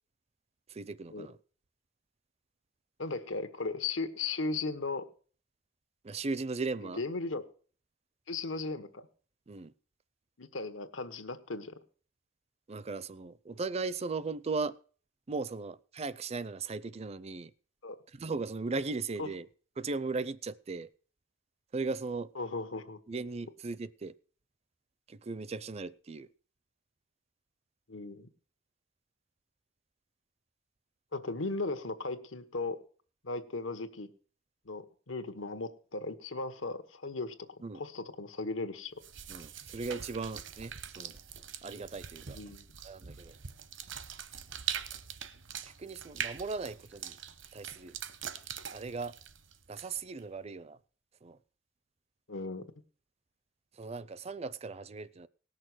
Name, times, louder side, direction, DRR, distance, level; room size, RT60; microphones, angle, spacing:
voice 1, 0.7-1.4 6.0-7.0 9.5-9.7 12.7-14.8 15.3-17.5 18.1-19.5 19.8-20.9 21.7-22.3 23.1-24.1 25.1-26.3 37.6-37.8 39.3-41.1 41.6-42.4 42.8-43.3 45.6-47.2 47.5-48.0 48.7-49.2 49.7-50.8 51.2-51.4 53.8-55.3, right 4 dB, 35° right, 0.5 m, -37 dB
voice 2, 3.0-5.1 6.8-7.4 8.3-9.0 10.4-11.7 17.8-18.0 19.2-19.3 22.3-23.0 27.9-28.3 31.1-32.8 33.2-34.1 34.6-37.3 37.7-38.9 42.3-42.6 52.3-52.6, left 3 dB, 90° left, 1.3 m, -36 dB
sound 1, 39.0-50.2, right 8 dB, 70° right, 0.9 m, -43 dB
18.0 x 6.6 x 6.2 m
head